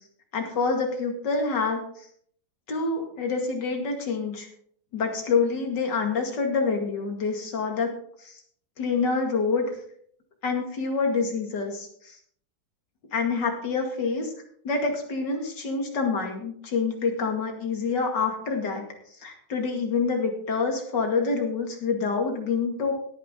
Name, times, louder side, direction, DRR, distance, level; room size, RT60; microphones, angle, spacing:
voice 1, 0.3-1.8 2.7-4.5 4.9-7.9 8.2-8.4 8.8-9.6 10.4-12.2 13.1-14.3 14.6-18.8 19.2-22.9, left 4 dB, 55° left, 2 dB, 2.9 m, -27 dB
17.5 x 9.5 x 3.8 m, 0.63 s
omnidirectional pair, 2.2 m